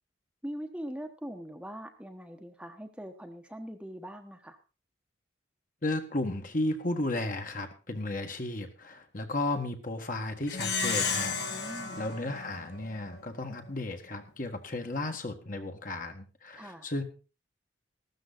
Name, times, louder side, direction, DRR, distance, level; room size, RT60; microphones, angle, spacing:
voice 1, 0.4-4.6 11.5-12.0 16.5-16.9, equal, 5° right, 5 dB, 1.1 m, -42 dB
voice 2, 5.8-17.0, left 2 dB, 45° left, 5 dB, 1.7 m, -34 dB
Plucked string instrument, 10.5-13.3, left 5 dB, 60° left, 2.3 m, -33 dB
14.5 x 12.5 x 4.0 m, 0.33 s
head